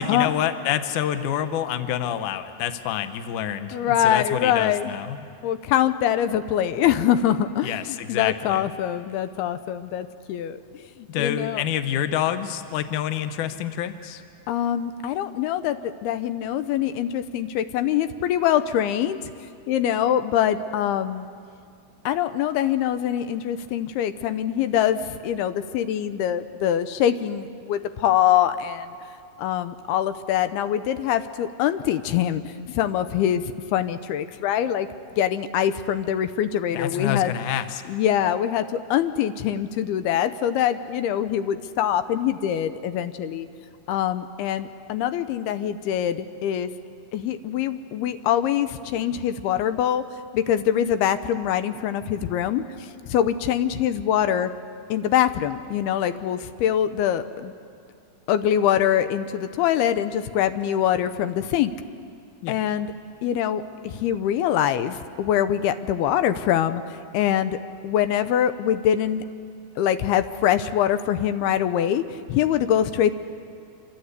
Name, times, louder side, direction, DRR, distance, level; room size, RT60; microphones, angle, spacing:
voice 1, 0.0-5.2 7.6-8.7 11.1-14.2 36.7-37.8 62.4-62.6, left 10 dB, 65° left, 9 dB, 2.3 m, -27 dB
voice 2, 3.7-4.9 5.4-10.6 11.0-11.6 14.5-19.2 19.7-21.3 22.1-28.9 29.4-34.9 35.2-37.3 37.9-43.5 43.9-46.7 47.1-50.0 50.3-54.5 54.9-57.5 58.3-61.7 62.5-62.9 63.2-66.8 67.1-67.6 67.8-69.2 69.8-73.1, left 10 dB, 90° left, 11 dB, 2.8 m, -24 dB
26.5 x 26.0 x 8.2 m, 2.3 s
omnidirectional pair, 4.4 m